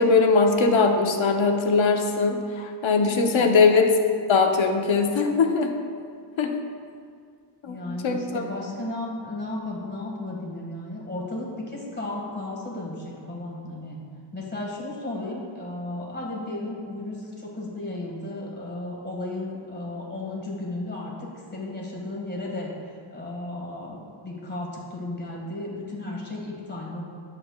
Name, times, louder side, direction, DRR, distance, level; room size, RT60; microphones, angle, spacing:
voice 1, 0.0-4.0 4.3-5.8 6.4-6.6 7.6-8.4, left 4 dB, 65° left, 3 dB, 0.8 m, -21 dB
voice 2, 7.6-14.0 14.3-27.0, left 2 dB, 20° left, -3 dB, 1.7 m, -34 dB
11.0 x 7.5 x 2.3 m, 2.2 s
wide cardioid pair, 120°, 50 cm